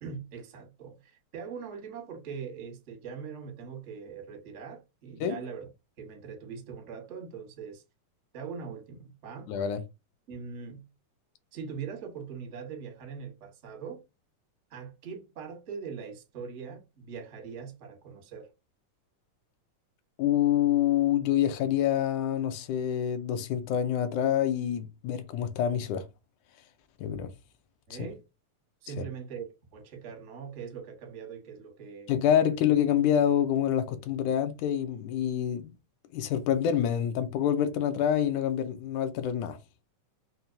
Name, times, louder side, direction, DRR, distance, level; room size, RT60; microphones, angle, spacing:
voice 1, 0.0-5.7 6.0-7.8 8.3-9.5 10.3-10.8 11.5-14.0 14.7-18.5 27.9-28.2 28.8-29.4 29.7-32.1, right 6 dB, 80° right, 0.6 m, -41 dB
voice 2, 9.5-9.8 20.2-26.0 27.0-27.3 29.0-29.1 32.1-35.7 36.1-39.6, left 10 dB, 80° left, 1.9 m, -26 dB
5.6 x 2.2 x 2.6 m
omnidirectional pair, 3.6 m